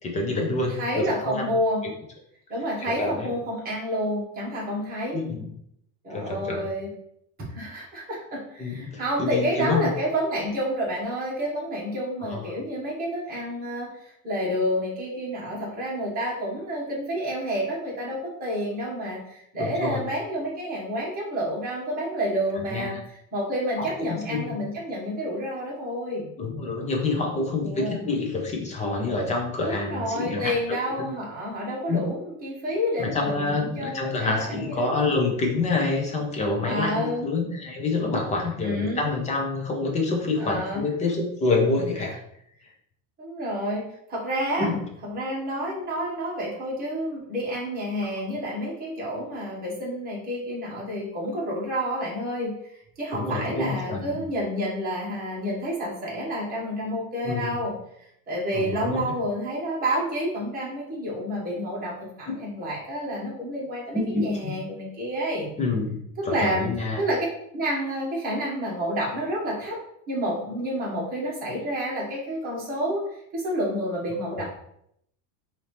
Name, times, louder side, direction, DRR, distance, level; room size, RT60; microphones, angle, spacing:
voice 1, 0.0-1.5 1.8-1.9 2.8-3.3 5.1-5.5 6.1-6.7 8.6-9.9 12.3-12.4 19.6-20.0 22.7-23.0 23.8-24.5 26.4-30.5 31.9-32.0 33.0-42.1 44.6-44.8 53.1-54.2 57.2-57.5 58.5-59.0 62.3-62.4 63.9-64.5 65.6-66.0 66.2-67.0 74.3-74.4, left 3 dB, 15° left, 0 dB, 0.5 m, -27 dB
voice 2, 0.7-1.8 2.5-5.2 6.0-6.9 7.5-23.0 23.3-26.3 27.6-28.0 29.6-35.1 36.6-37.2 38.6-39.0 40.4-40.9 43.2-44.7 45.0-65.5 66.2-66.7 67.0-67.3 67.5-69.8 70.1-74.4, equal, 20° right, -5 dB, 1.5 m, -29 dB
4.3 x 2.8 x 3.3 m, 0.73 s
cardioid pair, 165°, 41 cm